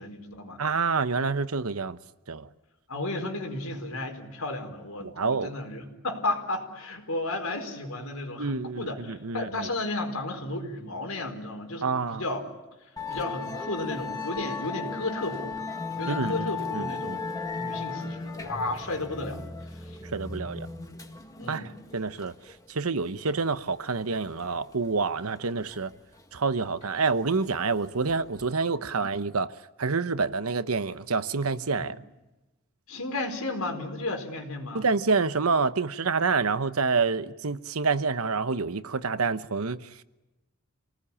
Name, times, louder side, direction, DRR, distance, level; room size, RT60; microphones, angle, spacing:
voice 1, 0.0-0.6 2.9-12.4 13.1-15.6 16.0-17.2 17.6-19.4 19.8-20.0 21.4-21.8 28.9-29.0 31.8-31.9 32.9-34.9, left 2 dB, 90° left, 4.7 m, -33 dB
voice 2, 0.6-2.0 2.3-2.5 5.0-5.5 8.4-9.7 11.8-12.2 16.1-17.2 20.1-20.7 21.5-21.6 21.9-22.3 22.7-25.9 26.3-29.5 29.8-32.0 34.7-39.8, right 4 dB, 85° right, 1.0 m, -27 dB
Musical instrument, 13.0-28.5, left 4 dB, 15° left, 2.0 m, -37 dB
28.0 x 19.0 x 8.6 m
head